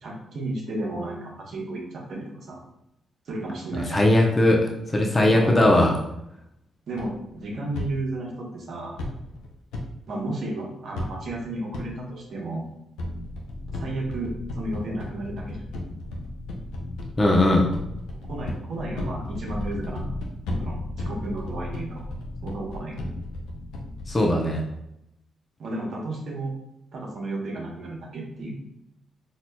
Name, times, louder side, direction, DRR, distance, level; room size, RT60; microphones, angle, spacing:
voice 1, 0.0-2.6 3.3-4.0 5.3-5.7 6.9-9.0 10.1-12.7 13.7-15.7 18.3-20.1 20.6-20.8 21.0-22.0 22.4-23.0 25.6-26.5 26.9-28.5, right 2 dB, 70° right, -2 dB, 0.9 m, -33 dB
voice 2, 3.8-4.6 4.9-6.0 17.2-17.7 24.1-24.6, left 1 dB, 30° left, 0 dB, 0.7 m, -19 dB
sound 1, 7.0-7.8 9.0-9.8 10.9-11.4 11.7-11.8 13.0-24.1, left 1 dB, 90° left, 0.5 m, -34 dB
4.2 x 2.8 x 2.2 m, 0.81 s
supercardioid pair, 60°, 0 cm